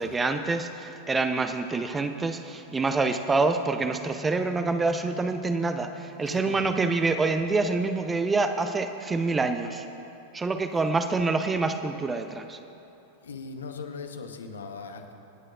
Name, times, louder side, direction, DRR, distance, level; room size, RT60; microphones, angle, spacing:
voice 1, 0.0-9.9 10.3-12.6, right 3 dB, 15° right, 8 dB, 0.6 m, -26 dB
sound 1, 3.8-7.8, right 1 dB, 30° left, 1.2 m, -49 dB
voice 2, 6.1-6.7 13.2-15.1, left 4 dB, 70° left, 5 dB, 0.9 m, -39 dB
26.5 x 9.8 x 2.4 m, 2.9 s
figure-of-eight pair, 90°, 0 cm